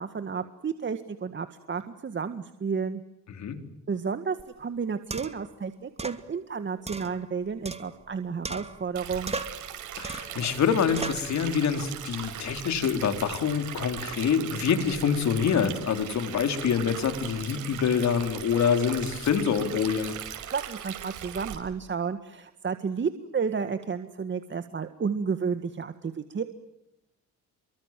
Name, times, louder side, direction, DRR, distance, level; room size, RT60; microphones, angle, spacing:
voice 1, 0.0-3.0 3.9-9.3 20.5-26.4, right 6 dB, 40° right, 9 dB, 1.8 m, -32 dB
sound 1, 4.4-4.5 5.1-5.5 6.0-6.2 6.9-8.1 8.4-9.0 9.3-9.7 10.0-10.4 11.0-11.3, right 3 dB, 20° right, 2.5 m, -36 dB
Stream, 8.9-21.5, right 10 dB, 85° right, 5.8 m, -39 dB
voice 2, 10.0-20.1, left 7 dB, 65° left, 8 dB, 4.1 m, -26 dB
30.0 x 24.0 x 7.6 m, 0.85 s
cardioid pair, 90°, 30 cm